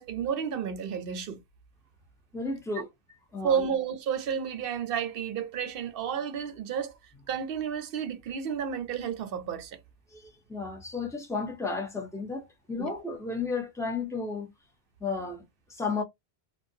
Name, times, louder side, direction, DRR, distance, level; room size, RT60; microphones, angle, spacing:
voice 1, 0.0-1.4 3.4-6.9 7.3-9.8 12.8-12.9, right 7 dB, 65° right, 0.7 m, -31 dB
voice 2, 2.3-2.9 3.3-3.6 10.1-14.5 15.0-15.4 15.7-16.0, left 4 dB, 5° left, 0.4 m, -33 dB
2.4 x 2.1 x 2.6 m
omnidirectional pair, 1.1 m